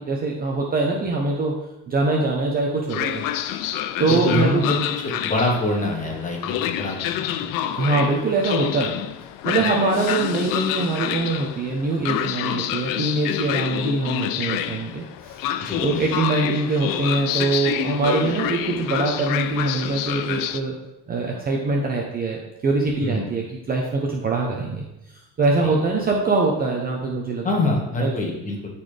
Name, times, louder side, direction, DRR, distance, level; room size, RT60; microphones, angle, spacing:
voice 1, 0.0-1.6 1.9-3.2 4.0-4.6 7.7-9.0 9.4-15.5 15.8-20.7 21.1-24.9 25.1-27.4 28.0-28.1, right 3 dB, 25° right, 0 dB, 0.8 m, -23 dB
Train, 2.9-20.6, left 11 dB, 70° left, 0.5 m, -28 dB
voice 2, 4.1-7.3 9.7-9.8 15.6-16.0 23.0-23.3 25.6-25.7 27.4-28.7, left 2 dB, 20° left, -1 dB, 1.4 m, -25 dB
12.5 x 4.2 x 3.3 m, 0.96 s
cardioid pair, 150°, 35 cm